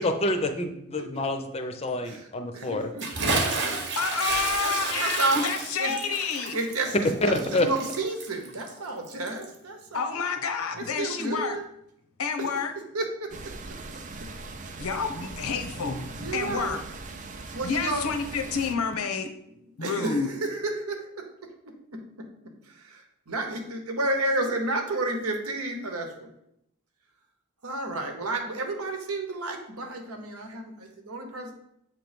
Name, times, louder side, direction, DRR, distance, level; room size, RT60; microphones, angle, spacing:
voice 1, 0.0-2.8 7.2-7.7, left 1 dB, 25° left, 7 dB, 0.5 m, -27 dB
voice 2, 2.5-3.8 4.6-5.5 5.8-5.9 6.5-10.2 10.7-11.7 12.4-12.5 12.9-13.5 14.7-14.8 16.2-16.7 17.5-18.1 19.8-21.5 21.9-22.3 22.7-26.3 27.6-31.5, right 2 dB, 90° right, 5 dB, 1.0 m, -31 dB
Bathtub (filling or washing) / Splash splatter, 3.0-9.6, right 3 dB, 55° right, 0.9 m, -31 dB
voice 3, 4.0-6.6 9.9-11.6 12.2-12.7 14.8-16.8 17.6-19.3 19.8-20.3, left 5 dB, 80° left, 6 dB, 0.7 m, -29 dB
sound 1, 13.3-18.8, right 3 dB, 35° right, 0.4 m, -40 dB
7.6 x 3.0 x 5.1 m, 0.79 s
head